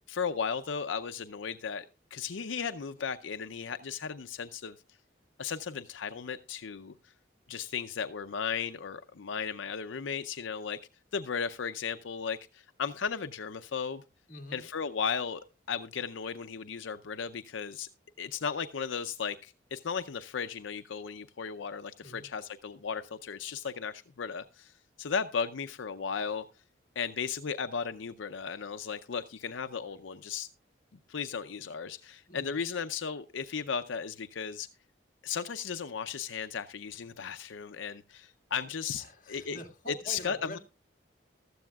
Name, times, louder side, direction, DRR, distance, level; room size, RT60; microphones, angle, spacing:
voice 1, 0.1-1.9 2.1-4.7 5.4-6.9 7.5-10.8 11.1-14.0 14.5-15.4 15.7-17.9 18.2-24.7 25.0-26.4 27.0-30.5 31.1-34.7 35.2-39.6 40.1-40.6, left 6 dB, 80° left, 0.6 m, -35 dB
voice 2, 14.3-14.6 22.0-22.3 32.3-32.6 38.9-40.6, left 1 dB, 45° left, 1.9 m, -45 dB
15.0 x 13.5 x 2.3 m
head